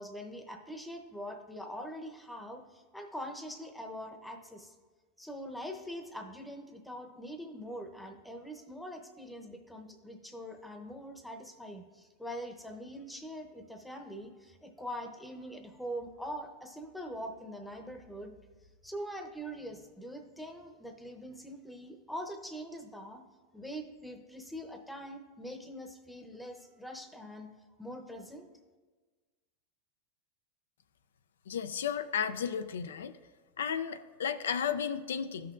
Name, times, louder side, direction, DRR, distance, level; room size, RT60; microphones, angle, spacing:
voice 1, 0.0-4.7 5.2-18.3 18.8-23.2 23.5-27.5 27.8-28.5, equal, 5° left, 5 dB, 0.7 m, -43 dB
voice 2, 31.5-33.1 33.6-35.5, left 7 dB, 90° left, 11 dB, 0.3 m, -33 dB
13.0 x 5.8 x 2.5 m, 1.4 s
hypercardioid pair, 120°, 0 cm